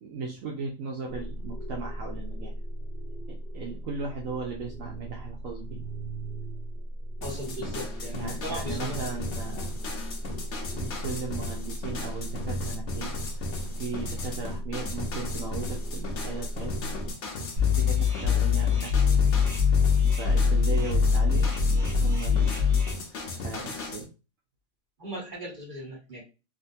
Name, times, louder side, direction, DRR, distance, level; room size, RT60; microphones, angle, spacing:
voice 1, 0.0-2.5 3.3-5.8 8.1-9.8 10.8-13.1 13.8-16.9 17.8-19.2 20.2-21.6 21.8-22.6 23.4-24.1, right 4 dB, 75° right, -1 dB, 1.1 m, -37 dB
sound 1, 1.1-17.1, right 1 dB, 35° left, 1.1 m, -37 dB
sound 2, 7.2-24.0, left 2 dB, 60° left, 1.1 m, -37 dB
voice 2, 7.2-9.0 10.7-10.8 25.0-26.2, equal, 35° right, -4 dB, 1.8 m, -38 dB
sound 3, 17.6-22.9, left 6 dB, 55° right, 1.7 m, -23 dB
3.8 x 2.6 x 2.6 m, 0.31 s
omnidirectional pair, 1.4 m